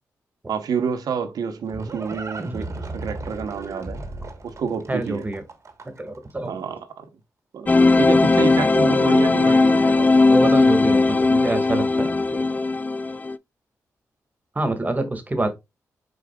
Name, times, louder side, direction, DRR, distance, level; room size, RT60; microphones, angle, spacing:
voice 1, 0.5-4.0 4.4-5.3 6.5-7.1 7.5-10.1, right 6 dB, 75° right, 0.8 m, -28 dB
Livestock farm animals working animals, 1.4-6.2, right 2 dB, 50° right, 1.2 m, -35 dB
voice 2, 4.9-5.4 6.0-6.6 9.3-9.5 10.3-12.5 14.5-15.5, right 2 dB, 25° right, 1.5 m, -26 dB
sound 1, 7.7-13.4, left 3 dB, 25° left, 0.3 m, -18 dB
5.1 x 4.3 x 2.2 m
cardioid pair, 50°, 6 cm